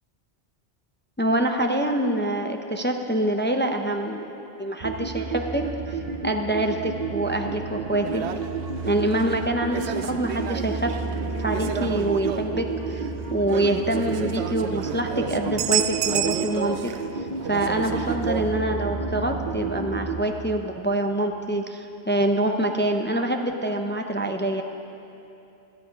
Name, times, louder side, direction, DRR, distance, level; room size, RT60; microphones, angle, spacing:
voice 1, 1.2-4.3 4.6-5.6 5.9-8.3 8.9-10.9 11.4-24.6, right 1 dB, 15° left, 4 dB, 0.5 m, -26 dB
sound 1, 4.8-20.2, right 4 dB, 40° right, 0.9 m, -31 dB
sound 2, 8.0-17.1 17.3-18.6, right 10 dB, 85° right, 0.9 m, -31 dB
16.5 x 12.0 x 5.2 m, 2.8 s
omnidirectional pair, 1.1 m